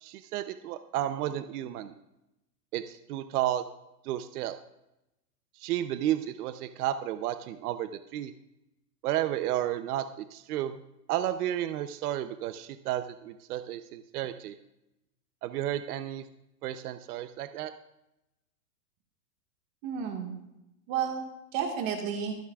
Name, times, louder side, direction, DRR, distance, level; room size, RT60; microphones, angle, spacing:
voice 1, 0.0-1.9 2.7-3.7 4.0-4.6 5.6-8.3 9.0-10.0 10.3-10.8 11.1-14.5 15.4-16.3 16.6-17.7, right 12 dB, 65° right, 10 dB, 0.8 m, -32 dB
voice 2, 19.8-20.3 20.9-22.4, right 7 dB, 40° right, 3 dB, 1.8 m, -32 dB
24.5 x 9.3 x 2.4 m, 0.90 s
supercardioid pair, 145°, 48 cm